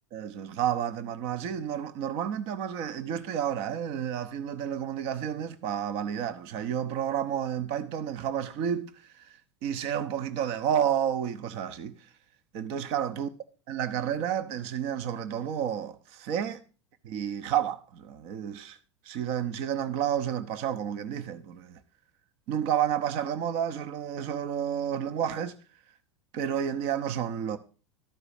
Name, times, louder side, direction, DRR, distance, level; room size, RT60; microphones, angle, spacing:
voice 1, 0.1-8.9 9.2-9.3 9.6-12.0 12.5-13.3 13.7-16.6 17.0-18.8 19.0-21.8 22.5-25.5 26.3-27.6, right 9 dB, 40° right, 0.8 m, -30 dB
13.5 x 4.9 x 6.5 m
figure-of-eight pair, 85°, 15 cm